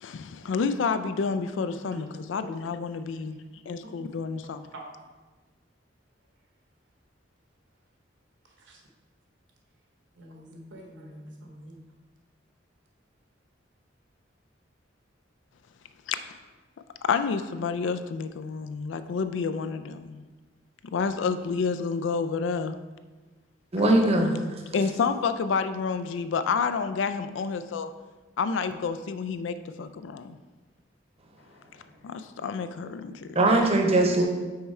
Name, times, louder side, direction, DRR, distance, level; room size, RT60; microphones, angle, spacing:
voice 1, 0.0-3.4 3.7-4.7 16.1-16.2 17.0-20.2 20.8-22.8 23.8-23.9 24.7-27.9 28.4-30.4 32.0-33.5, left 5 dB, 70° left, 11 dB, 0.4 m, -29 dB
voice 2, 10.2-11.8, right 1 dB, 70° right, 0 dB, 1.1 m, -45 dB
voice 3, 23.7-24.6 33.3-34.2, right 2 dB, 35° right, 1 dB, 0.8 m, -21 dB
5.7 x 4.2 x 4.4 m, 1.3 s
head